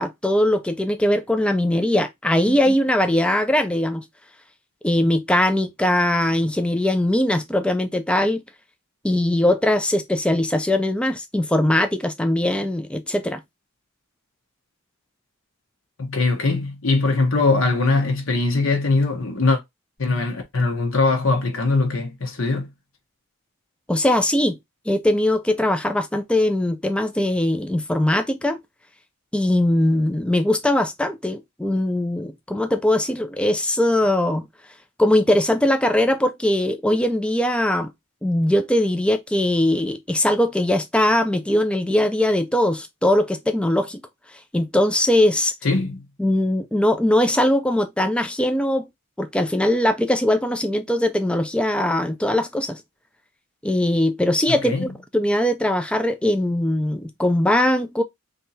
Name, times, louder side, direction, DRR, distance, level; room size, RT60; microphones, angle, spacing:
voice 1, 0.0-4.0 4.8-8.4 9.0-13.4 23.9-24.6 24.9-28.6 29.3-34.5 35.0-37.9 38.2-44.0 44.5-45.5 46.2-48.8 49.2-52.8 53.6-58.0, left 1 dB, 5° left, 0.3 m, -21 dB
voice 2, 16.0-19.6 20.0-22.7 45.6-46.0 54.5-54.9, left 3 dB, 65° left, 1.0 m, -21 dB
3.4 x 2.7 x 4.0 m
head